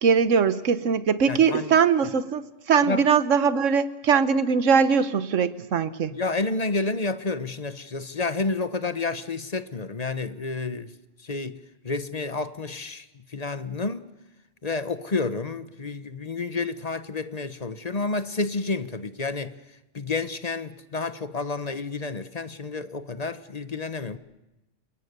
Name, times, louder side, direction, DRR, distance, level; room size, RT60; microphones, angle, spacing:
voice 1, 0.0-6.1, right 6 dB, 85° right, 1.4 m, -21 dB
voice 2, 1.3-1.8 2.0-2.1 2.8-3.1 6.1-10.9 11.2-14.0 14.6-19.6 19.9-24.2, left 3 dB, 35° left, 1.1 m, -30 dB
28.0 x 21.5 x 6.8 m
omnidirectional pair, 1.3 m